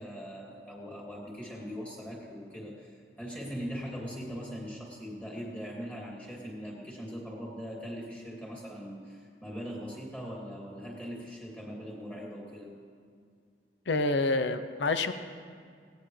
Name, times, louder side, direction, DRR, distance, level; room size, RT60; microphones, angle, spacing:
voice 1, 0.0-12.7, equal, 10° left, -3 dB, 2.8 m, -41 dB
voice 2, 13.9-15.1, left 3 dB, 90° left, 10 dB, 0.7 m, -27 dB
18.5 x 17.0 x 3.3 m, 2.2 s
head